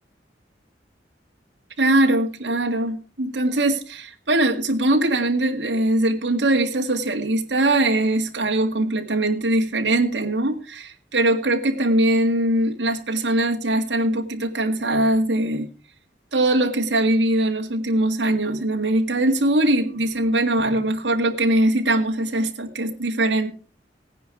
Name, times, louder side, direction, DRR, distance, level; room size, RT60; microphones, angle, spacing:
voice 1, 1.8-15.7 16.3-23.5, right 1 dB, 75° right, 3 dB, 2.0 m, -21 dB
17.0 x 10.0 x 4.8 m, 0.37 s
head